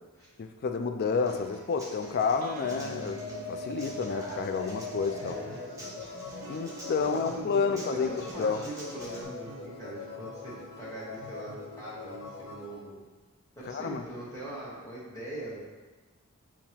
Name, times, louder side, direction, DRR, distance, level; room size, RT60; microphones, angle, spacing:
voice 1, 0.4-5.4 6.5-8.6 13.7-14.0, left 5 dB, 45° left, 6 dB, 0.3 m, -30 dB
Human voice / Acoustic guitar, 1.2-9.2, right 1 dB, 15° right, 0.8 m, -47 dB
sound 1, 2.4-5.8 6.3-13.1, right 5 dB, 75° right, 0.3 m, -50 dB
sound 2, 3.1-12.8, left 3 dB, 75° left, 0.7 m, -42 dB
voice 2, 5.2-6.0 7.0-13.0 13.6-15.6, right 1 dB, 15° left, -8 dB, 1.1 m, -42 dB
6.9 x 2.4 x 2.9 m, 1.2 s
head